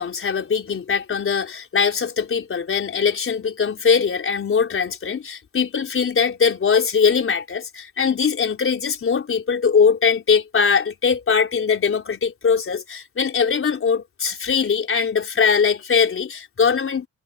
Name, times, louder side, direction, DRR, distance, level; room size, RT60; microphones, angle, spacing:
voice 1, 0.0-17.1, left 6 dB, 45° left, 4.3 m, -21 dB
cardioid pair, 90°, 30 cm